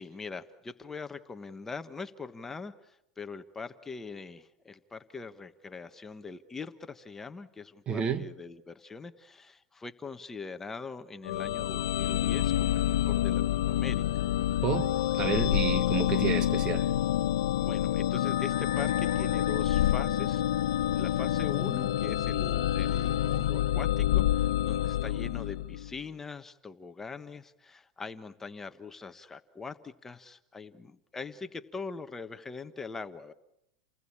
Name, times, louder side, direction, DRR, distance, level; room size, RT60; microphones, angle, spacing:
voice 1, 0.0-14.2 17.6-20.4 21.0-33.3, left 4 dB, 15° left, 1.3 m, -42 dB
voice 2, 7.9-8.3 14.6-16.9, right 6 dB, 30° right, 1.5 m, -30 dB
sound 1, 11.2-26.0, left 12 dB, 90° left, 1.1 m, -28 dB
30.0 x 20.5 x 8.7 m
supercardioid pair, 125°, 3 cm